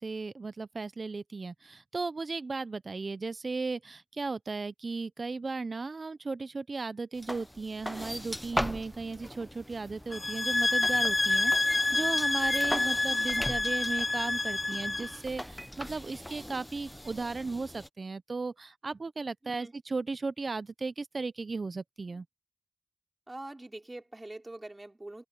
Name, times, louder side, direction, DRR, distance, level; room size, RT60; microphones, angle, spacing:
voice 1, 0.0-22.2, right 3 dB, 70° right, 0.5 m, -36 dB
sound 1, 7.1-17.9, equal, 10° left, 0.8 m, -39 dB
sound 2, 10.1-15.2, left 2 dB, 45° left, 0.4 m, -28 dB
voice 2, 23.3-25.3, right 2 dB, 35° right, 4.0 m, -44 dB
open air
cardioid pair, 40°, 0 cm